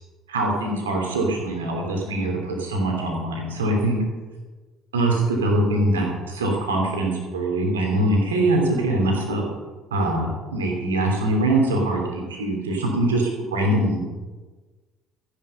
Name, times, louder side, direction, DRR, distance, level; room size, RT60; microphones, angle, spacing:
voice 1, 0.3-4.0 4.9-9.4 9.9-14.0, right 1 dB, 80° right, 0 dB, 3.1 m, -23 dB
14.0 x 10.5 x 5.7 m, 1.3 s
figure-of-eight pair, 55°, 0 cm